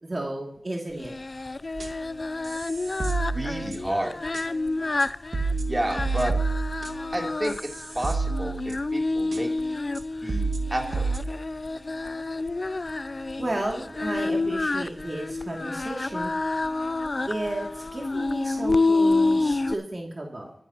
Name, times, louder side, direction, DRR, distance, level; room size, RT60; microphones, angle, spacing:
voice 1, 0.0-1.1 13.4-16.3 17.3-20.5, right 1 dB, 40° right, -1 dB, 2.5 m, -33 dB
Singing, 1.0-19.7, left 3 dB, 45° left, 0.4 m, -28 dB
sound 1, 1.7-2.1 2.4-4.0 4.3-4.4 5.0-5.1 5.3-9.0 9.3-9.4 9.9-10.0 10.3-11.2, right 4 dB, 70° right, 2.0 m, -30 dB
voice 2, 3.3-4.2 5.6-6.3 7.1-8.6 8.9-9.5 10.2-11.1, right 1 dB, 20° right, 0 dB, 3.1 m, -30 dB
22.5 x 10.5 x 2.9 m, 0.70 s
wide cardioid pair, 65°, 0 cm